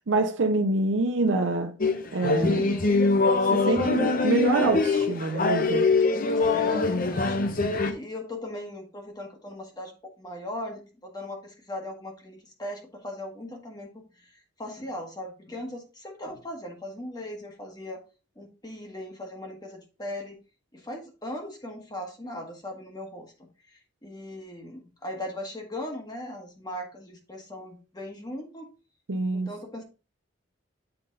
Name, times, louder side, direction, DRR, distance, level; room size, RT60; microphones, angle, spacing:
voice 1, 0.1-1.7 2.1-2.7 3.5-5.9 29.1-29.5, right 2 dB, 90° right, 0.7 m, -26 dB
sound 1, 1.8-7.9, left 3 dB, 50° left, 0.8 m, -23 dB
voice 2, 2.3-3.0 3.8-4.0 6.4-18.0 18.4-20.3 20.7-28.7 29.3-29.8, left 1 dB, 20° left, 1.3 m, -39 dB
7.9 x 3.9 x 3.9 m
head